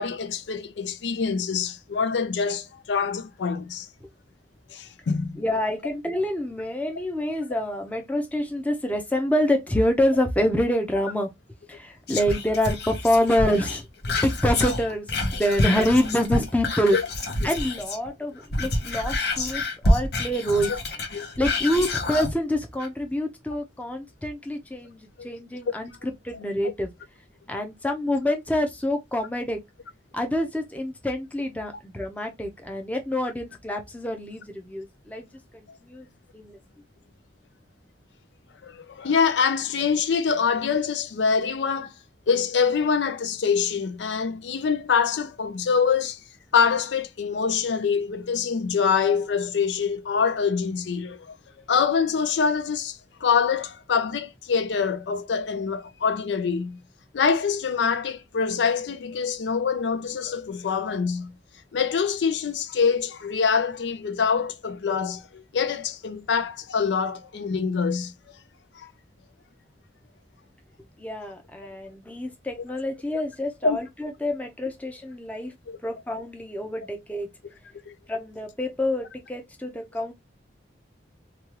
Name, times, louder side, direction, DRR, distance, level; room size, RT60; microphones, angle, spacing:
voice 1, 0.0-3.9 4.7-5.4 16.9-17.0 20.6-20.8 21.1-21.3 38.6-41.9 42.3-46.2 46.5-51.3 51.7-56.8 57.1-61.3 61.7-68.1 68.7-68.9 73.6-73.8 75.7-75.8 77.9-78.0, left 6 dB, 80° left, 0.4 m, -25 dB
voice 2, 5.4-11.3 11.7-13.9 14.2-17.0 17.4-20.7 21.4-26.9 27.5-29.6 30.1-35.3 35.5-36.1 36.3-36.6 71.0-75.5 75.8-77.3 78.1-80.1, left 1 dB, 10° left, 0.5 m, -26 dB
Whispering, 12.1-18.1 18.4-22.3 22.8-22.9, left 2 dB, 65° left, 0.8 m, -27 dB
3.1 x 2.3 x 2.8 m
head